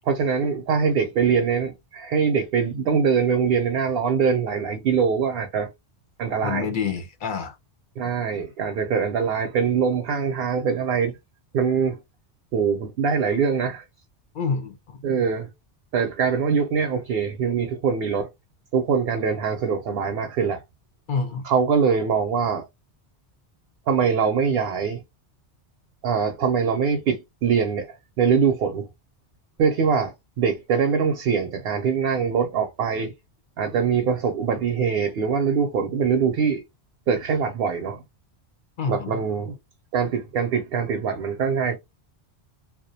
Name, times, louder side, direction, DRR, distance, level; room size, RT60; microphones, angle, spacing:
voice 1, 0.0-5.7 6.2-6.7 8.0-11.2 11.5-12.0 12.5-13.8 15.0-15.5 15.9-18.3 18.7-20.6 21.4-22.6 23.9-25.0 26.0-28.9 29.6-33.1 33.6-36.6 37.1-38.0 38.9-39.5 39.9-41.8, right 6 dB, 65° right, 0.7 m, -23 dB
voice 2, 6.4-7.6 14.3-15.0 21.1-21.5 38.8-39.2, left 5 dB, 60° left, 0.6 m, -27 dB
2.3 x 2.1 x 2.6 m
omnidirectional pair, 1.2 m